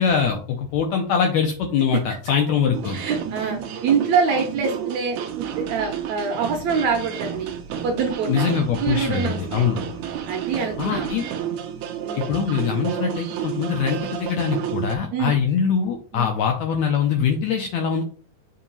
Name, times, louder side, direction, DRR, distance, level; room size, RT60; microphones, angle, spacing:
voice 1, 0.0-3.0 8.3-9.8 10.8-11.3 12.1-18.0, left 7 dB, 85° left, 3 dB, 1.6 m, -23 dB
sound 1, 2.7-15.0, right 9 dB, 90° right, 1.6 m, -31 dB
voice 2, 2.9-7.5 7.8-8.4 8.8-9.9 10.3-11.3 12.0-12.4 15.1-15.4 16.1-16.3, right 6 dB, 70° right, 2 dB, 1.7 m, -25 dB
7.1 x 2.9 x 5.4 m, 0.42 s
omnidirectional pair, 4.3 m